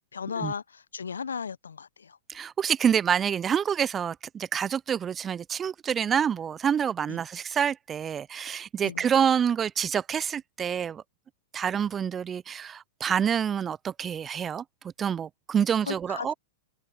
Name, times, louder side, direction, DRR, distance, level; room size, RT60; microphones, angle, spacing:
voice 1, 0.1-2.2 7.1-7.2 8.8-9.0 15.9-16.3, left 6 dB, 75° left, 1.0 m, -35 dB
voice 2, 2.3-11.0 11.5-14.6 15.0-16.3, right 8 dB, 20° right, 0.7 m, -27 dB
open air
figure-of-eight pair, 100°, 0 cm